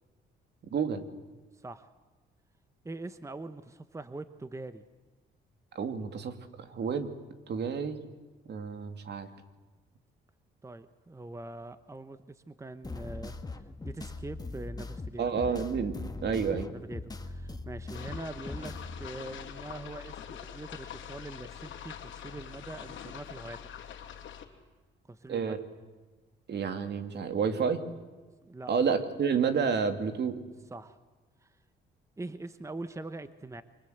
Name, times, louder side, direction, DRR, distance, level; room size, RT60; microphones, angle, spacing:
voice 1, 0.7-1.0 5.7-7.1 7.5-8.0 8.5-9.3 15.2-16.7 25.3-25.6 26.5-27.8 28.7-30.4, right 6 dB, 60° right, 8 dB, 2.6 m, -30 dB
voice 2, 1.5-1.9 2.8-4.9 10.6-15.4 16.7-23.6 25.1-25.5 28.4-28.7 30.7-31.0 31.4-31.5 32.2-33.6, right 2 dB, 15° right, 11 dB, 1.1 m, -43 dB
sound 1, 12.8-19.1, left 3 dB, 20° left, 1.9 m, -40 dB
sound 2, 17.9-24.4, left 9 dB, 75° left, 3.0 m, -44 dB
27.5 x 24.5 x 8.1 m, 1.3 s
cardioid pair, 90°, 20 cm